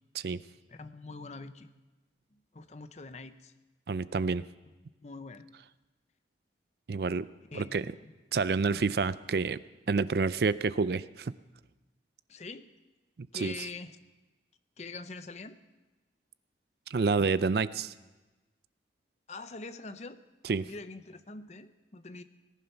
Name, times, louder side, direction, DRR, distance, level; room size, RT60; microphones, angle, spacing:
voice 1, 0.7-1.7 2.3-3.5 5.0-5.5 7.5-8.1 8.7-9.0 12.3-12.7 13.3-14.0 14.8-15.6 19.3-20.2 20.6-22.2, left 3 dB, 40° left, 11 dB, 0.7 m, -44 dB
voice 2, 3.9-4.4 6.9-7.3 7.5-7.9 8.3-9.6 9.9-11.3 13.3-13.5 16.9-17.9 20.4-20.7, right 4 dB, 60° right, 16 dB, 0.4 m, -28 dB
18.5 x 11.0 x 5.7 m, 1.2 s
head